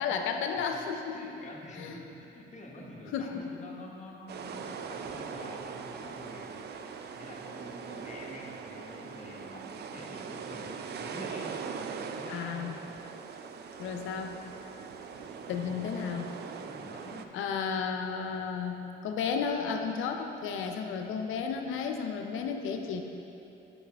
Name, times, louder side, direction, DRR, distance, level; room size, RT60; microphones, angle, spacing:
voice 1, 0.0-1.2 1.8-1.9 3.1-3.4 12.3-12.8 13.8-14.4 15.5-16.2 17.3-23.0, left 6 dB, 85° left, 4 dB, 0.5 m, -33 dB
voice 2, 1.1-6.5 7.2-11.6 12.0-12.8 15.2-17.4, left 1 dB, 35° left, -2 dB, 1.1 m, -47 dB
sound 1, 4.3-17.2, right 6 dB, 55° right, 0.4 m, -41 dB
7.1 x 5.6 x 3.4 m, 2.9 s
cardioid pair, 90°, 20 cm